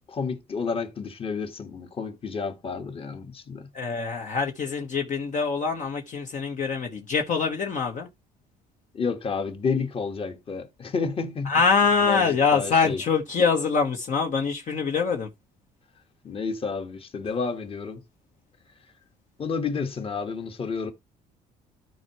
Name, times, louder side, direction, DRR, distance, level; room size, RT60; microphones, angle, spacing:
voice 1, 0.1-3.7 8.9-11.5 11.8-13.0 16.2-18.0 19.4-20.9, left 5 dB, 35° left, 1.5 m, -30 dB
voice 2, 3.7-8.1 11.5-15.3, left 5 dB, 50° left, 1.3 m, -24 dB
13.5 x 4.6 x 3.1 m
cardioid pair, 110°, 17 cm